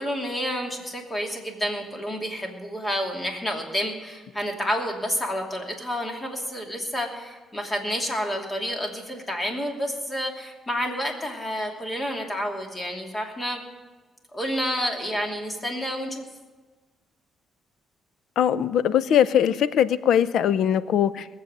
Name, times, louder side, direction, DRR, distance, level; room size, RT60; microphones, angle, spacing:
voice 1, 0.0-13.6 14.3-16.2, equal, 25° left, 2 dB, 2.7 m, -29 dB
voice 2, 18.4-21.3, left 9 dB, 75° left, 16 dB, 0.5 m, -21 dB
20.0 x 7.6 x 6.7 m, 1.3 s
cardioid pair, 90°, 0 cm